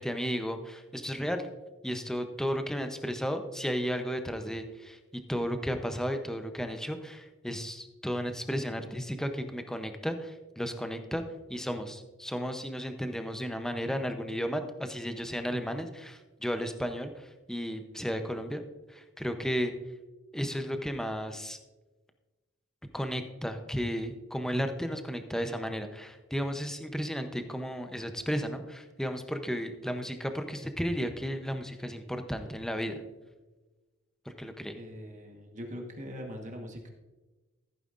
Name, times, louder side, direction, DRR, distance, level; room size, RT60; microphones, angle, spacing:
voice 1, 0.0-1.5 1.8-11.2 11.5-18.6 18.9-19.7 20.3-21.6 22.9-33.0 34.4-34.8, equal, 5° left, 6 dB, 0.6 m, -34 dB
voice 2, 34.7-36.9, equal, 35° right, 2 dB, 1.3 m, -42 dB
15.0 x 9.0 x 2.5 m, 1.2 s
head